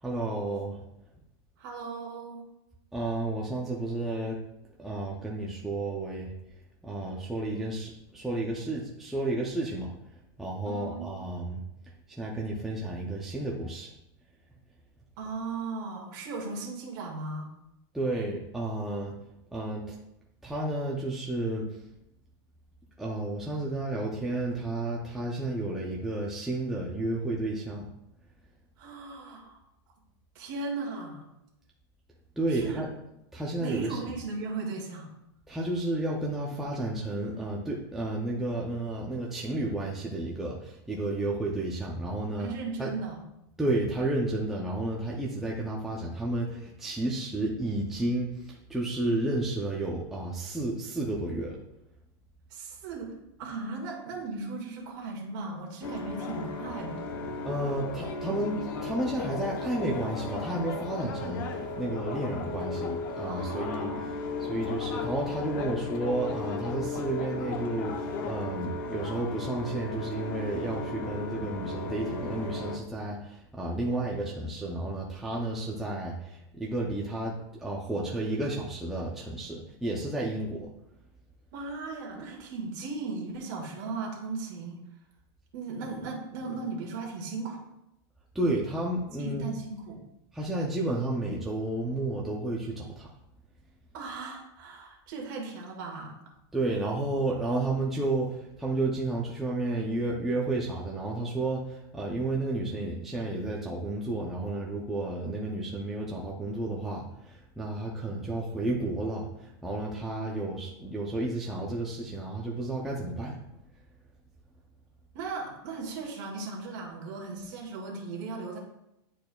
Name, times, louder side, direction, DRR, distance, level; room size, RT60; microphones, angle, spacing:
voice 1, 0.0-0.8 2.9-4.4 4.8-6.3 6.8-9.9 10.4-11.6 12.2-13.9 17.9-19.2 19.5-19.9 20.4-21.7 23.0-27.8 32.4-32.9 33.3-34.0 35.5-42.5 42.8-42.9 43.6-51.6 57.4-61.4 61.8-63.9 64.4-80.7 88.3-89.5 90.3-93.1 96.5-113.3, right 2 dB, ahead, -4 dB, 0.4 m, -32 dB
voice 2, 1.6-2.5 10.6-11.1 15.2-17.5 28.8-29.6 30.3-31.2 32.5-32.8 33.6-35.1 42.4-43.2 52.5-57.0 63.3-64.2 81.5-84.8 85.5-87.6 89.2-90.0 93.9-96.1 115.1-118.6, right 3 dB, 45° right, 0 dB, 1.7 m, -37 dB
sound 1, 55.8-72.8, left 3 dB, 50° left, 0.7 m, -35 dB
10.5 x 4.5 x 2.2 m, 0.84 s
supercardioid pair, 175°, 14 cm